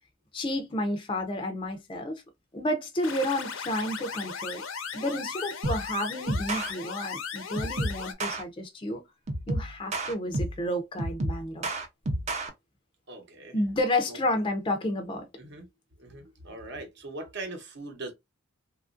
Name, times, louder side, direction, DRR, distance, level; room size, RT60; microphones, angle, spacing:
voice 1, 0.3-2.2 2.5-4.6 4.9-9.0 9.5-11.7 13.5-15.3, left 1 dB, 25° left, 0.4 m, -31 dB
sound 1, 3.0-8.1, left 6 dB, 75° left, 0.6 m, -37 dB
sound 2, 5.6-5.9 6.3-6.7 7.6-8.4 9.3-10.7 11.0-12.5, right 1 dB, 35° right, 0.5 m, -31 dB
voice 2, 13.1-13.6 14.1-14.2 15.4-15.7 16.0-18.1, right 2 dB, 55° right, 0.8 m, -40 dB
2.9 x 2.4 x 2.4 m
head